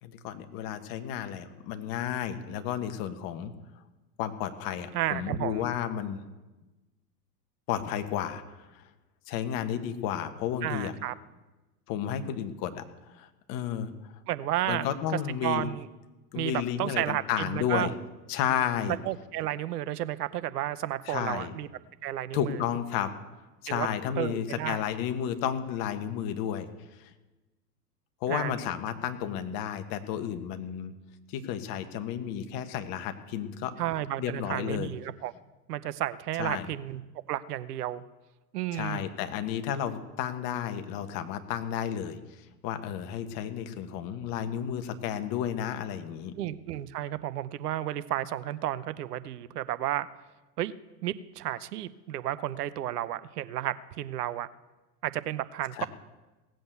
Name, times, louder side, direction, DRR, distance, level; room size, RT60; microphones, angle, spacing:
voice 1, 0.0-3.5 4.2-6.2 7.7-8.9 9.3-10.9 11.9-12.8 13.2-14.1 14.7-15.7 16.3-17.9 18.3-19.0 21.1-21.5 22.3-23.1 23.6-26.7 27.0-27.1 28.2-30.9 31.3-33.7 34.2-34.9 36.4-36.7 38.7-46.3 55.8-55.9, left 9 dB, 45° left, 9 dB, 1.5 m, -32 dB
voice 2, 4.9-5.7 10.6-11.1 14.3-14.9 15.4-15.9 16.3-17.9 19.0-21.7 22.0-22.6 23.7-23.9 24.2-24.8 28.3-28.5 33.8-35.3 35.7-37.0 37.3-38.0 38.5-39.0 46.4-50.1 50.6-50.7 51.0-54.5 55.0-55.9, right 13 dB, 70° right, 15 dB, 0.9 m, -32 dB
17.0 x 7.8 x 8.1 m, 1.1 s
hypercardioid pair, 100°, 48 cm